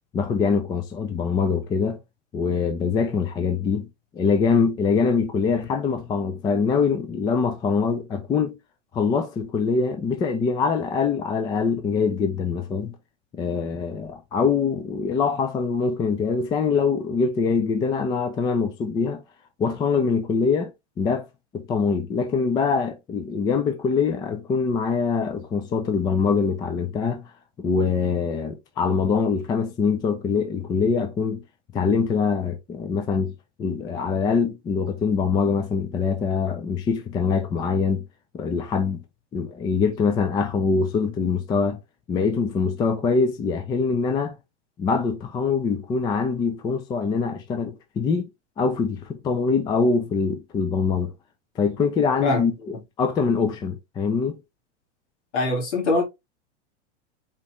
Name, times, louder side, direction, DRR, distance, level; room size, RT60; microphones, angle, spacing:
voice 1, 0.1-2.0 2.3-3.9 4.1-8.6 8.9-13.0 13.3-19.2 19.6-20.7 21.0-21.3 21.5-27.3 27.6-31.4 31.7-33.3 33.6-38.0 38.3-39.0 39.3-41.8 42.1-44.4 44.8-48.3 48.6-51.1 51.6-52.5 53.0-54.4, left 5 dB, 10° left, 0.3 m, -23 dB
voice 2, 55.3-56.0, left 2 dB, 70° left, 2.2 m, -22 dB
4.3 x 3.0 x 3.1 m
hypercardioid pair, 130°, 36 cm